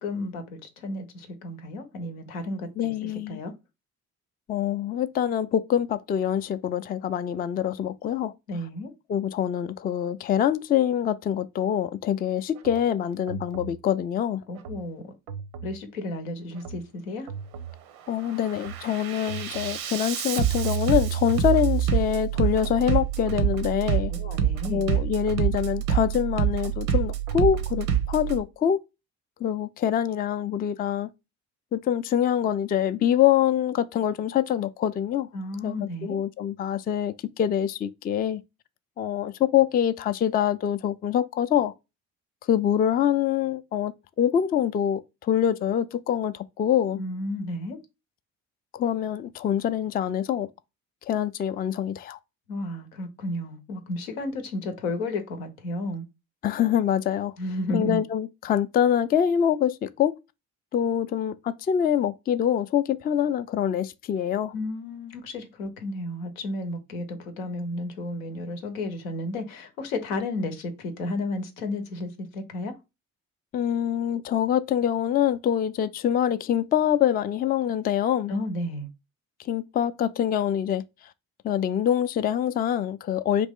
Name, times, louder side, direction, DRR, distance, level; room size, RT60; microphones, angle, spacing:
voice 1, 0.0-3.5 8.5-8.9 14.5-15.1 15.6-17.3 24.1-24.9 35.3-36.2 47.0-47.8 52.5-56.0 57.4-58.0 64.5-72.7 78.3-78.9, left 2 dB, 85° left, 0.8 m, -32 dB
voice 2, 2.8-3.4 4.5-8.3 9.1-14.4 18.1-24.1 24.7-28.8 29.4-31.1 31.7-35.3 35.6-38.4 39.0-41.7 42.5-43.9 44.2-47.0 48.7-50.5 51.1-52.2 56.4-57.3 57.7-60.1 60.7-64.5 73.5-78.3 79.4-80.8 81.4-83.5, left 9 dB, 25° left, 0.3 m, -25 dB
Bass drum, 12.6-12.8 13.3-13.8 14.6-14.8 15.3-15.8 16.6-16.8 17.3-17.8 18.2-28.4, right 9 dB, 85° right, 0.6 m, -27 dB
3.1 x 2.5 x 3.5 m
hypercardioid pair, 50°, 41 cm